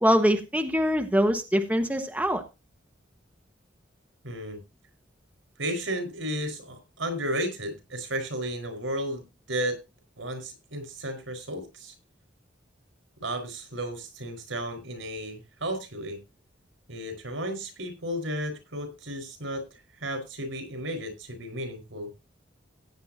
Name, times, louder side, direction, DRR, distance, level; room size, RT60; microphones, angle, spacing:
voice 1, 0.0-2.4, equal, 5° right, 5 dB, 1.1 m, -23 dB
voice 2, 4.2-4.6 5.6-9.2 9.5-9.8 10.2-11.9 13.2-16.2 16.9-19.6 20.0-22.1, right 1 dB, 85° right, 8 dB, 4.8 m, -33 dB
16.0 x 9.5 x 2.8 m, 0.27 s
head